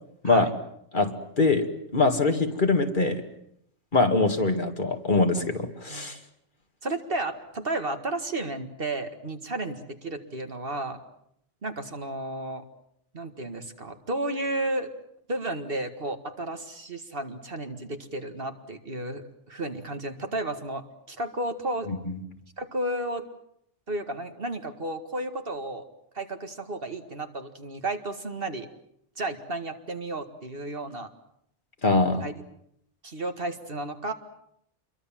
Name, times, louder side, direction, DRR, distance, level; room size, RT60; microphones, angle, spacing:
voice 1, 0.9-1.6 1.9-3.2 3.9-6.2 22.1-22.2 31.8-32.3, left 3 dB, 45° left, 6 dB, 2.2 m, -23 dB
voice 2, 6.8-11.0 11.6-12.6 13.1-14.9 15.3-21.9 22.6-23.3 23.9-25.8 26.1-28.7 29.2-31.1 32.2-32.3 33.0-34.1, right 2 dB, 55° right, 7 dB, 2.1 m, -33 dB
28.0 x 23.0 x 7.5 m, 0.73 s
omnidirectional pair, 1.2 m